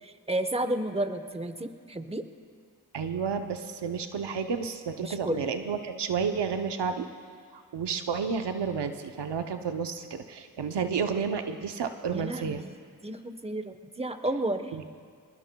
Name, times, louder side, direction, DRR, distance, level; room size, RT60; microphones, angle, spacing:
voice 1, 0.3-2.2 5.0-5.4 12.1-12.7 13.0-14.7, right 1 dB, 15° right, 9 dB, 1.0 m, -31 dB
voice 2, 2.9-7.1 7.5-12.6 14.7-14.8, right 6 dB, 90° right, 7 dB, 0.8 m, -31 dB
22.5 x 20.5 x 2.3 m, 2.1 s
cardioid pair, 40°, 40 cm